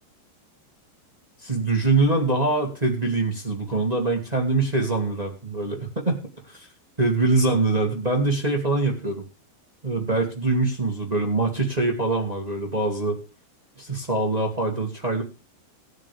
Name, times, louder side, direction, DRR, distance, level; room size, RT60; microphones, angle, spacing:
voice 1, 1.4-6.2 6.5-6.7 7.0-9.2 9.8-13.2 13.8-15.2, right 3 dB, 30° right, 0 dB, 0.7 m, -23 dB
18.0 x 9.2 x 3.5 m, 0.32 s
omnidirectional pair, 5.2 m